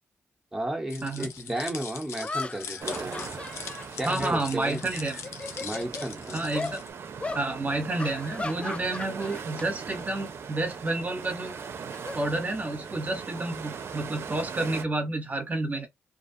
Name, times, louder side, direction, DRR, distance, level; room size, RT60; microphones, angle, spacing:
voice 1, 0.5-3.4 4.0-4.8 5.6-6.6, right 1 dB, 10° right, 1.1 m, -33 dB
sound 1, 0.9-6.9, left 7 dB, 85° left, 0.5 m, -41 dB
sound 2, 1.4-1.5 2.2-4.8 5.2-6.1 6.5-6.8 7.2-7.5 8.0-9.7 10.0-10.3 11.5-12.9, left 3 dB, 25° left, 0.4 m, -37 dB
sound 3, 2.8-14.8, right 6 dB, 65° right, 0.5 m, -40 dB
voice 2, 4.0-5.2 6.3-6.8 7.3-11.5 12.1-15.9, right 2 dB, 35° right, 1.0 m, -30 dB
2.5 x 2.3 x 2.6 m
cardioid pair, 55°, 5 cm